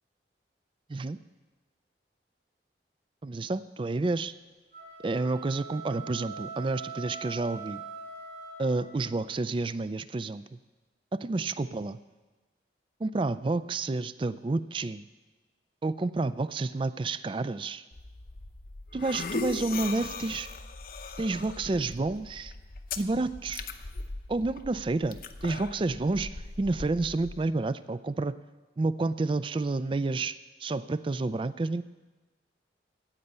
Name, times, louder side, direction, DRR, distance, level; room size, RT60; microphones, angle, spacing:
voice 1, 3.2-4.3 5.0-7.8 8.6-10.4 11.1-12.0 13.0-15.1 15.8-17.8 18.9-20.5 21.2-22.5 23.0-23.6 24.3-28.3 28.8-31.8, right 3 dB, 30° right, 15 dB, 0.3 m, -30 dB
sound 1, 4.6-9.2, right 4 dB, 65° right, 5.1 m, -42 dB
sound 2, 17.9-27.4, left 3 dB, 55° left, 0.7 m, -40 dB
16.5 x 5.5 x 8.2 m, 1.3 s
head